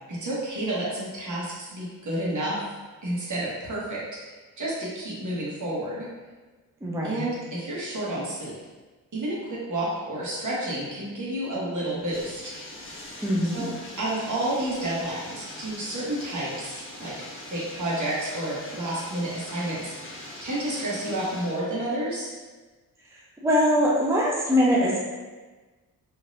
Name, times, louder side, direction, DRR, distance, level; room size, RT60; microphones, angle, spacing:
voice 1, 0.1-2.6 3.0-6.1 7.0-8.5 9.1-12.5 13.5-13.7 14.0-17.1 17.5-22.3, right 1 dB, 55° right, -6 dB, 1.3 m, -30 dB
voice 2, 6.8-7.3 13.2-13.7 23.4-25.0, equal, 5° right, -4 dB, 0.6 m, -22 dB
Bathtub (filling or washing), 11.9-21.6, left 1 dB, 35° left, 0.9 m, -42 dB
3.2 x 2.8 x 2.6 m, 1.3 s
cardioid pair, 60°, 37 cm